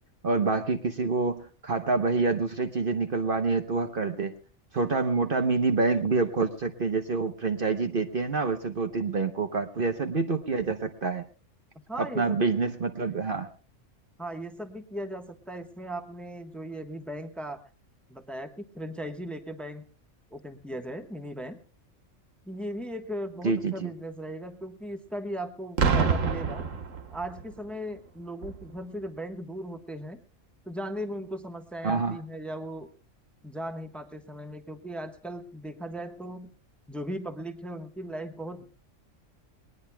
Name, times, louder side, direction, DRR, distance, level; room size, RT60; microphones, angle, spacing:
voice 1, 0.2-4.3 4.7-11.3 12.0-13.5 23.4-23.9 31.8-32.2, right 4 dB, 50° right, 6 dB, 1.1 m, -27 dB
voice 2, 11.9-12.5 14.2-17.6 18.1-19.8 20.3-21.6 22.4-26.6 27.1-30.2 30.6-32.9 33.4-36.5 36.9-38.6, equal, ahead, 6 dB, 1.1 m, -37 dB
Boom, 25.8-27.5 28.4-28.7, right 5 dB, 90° right, 1.6 m, -26 dB
22.0 x 19.5 x 2.3 m, 0.38 s
omnidirectional pair, 1.3 m